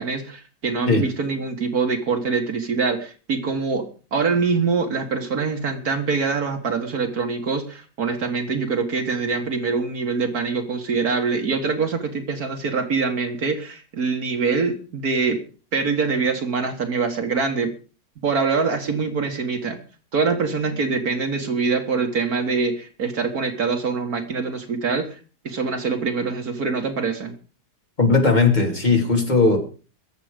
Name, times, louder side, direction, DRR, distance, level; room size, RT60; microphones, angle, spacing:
voice 1, 0.0-15.4 15.7-17.7 18.2-19.8 20.1-25.2 25.4-27.3, right 4 dB, 65° right, 6 dB, 2.1 m, -24 dB
voice 2, 28.0-29.6, left 3 dB, 25° left, 2 dB, 3.0 m, -17 dB
22.0 x 7.8 x 5.1 m, 0.37 s
omnidirectional pair, 1.7 m